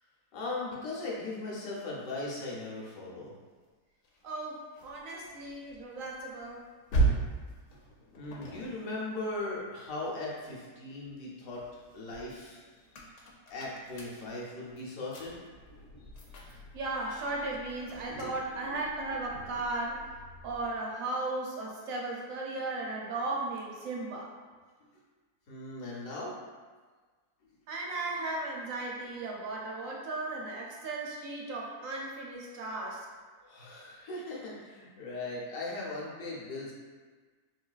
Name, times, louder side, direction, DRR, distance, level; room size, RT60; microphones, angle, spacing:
voice 1, 0.3-3.3 7.7-7.8 8.2-11.6 11.9-12.6 13.5-15.3 18.1-18.3 18.6-18.8 25.5-26.3 33.4-36.7, left 2 dB, 65° left, -4 dB, 1.1 m, -38 dB
sound 1, 4.0-10.6 11.0-20.8, right 3 dB, 85° left, 1.2 m, -38 dB
voice 2, 4.2-6.6 16.7-20.0 20.4-24.3 27.7-33.0, right 2 dB, 65° right, -2 dB, 0.9 m, -36 dB
3.8 x 2.6 x 2.3 m, 1.4 s
omnidirectional pair, 1.7 m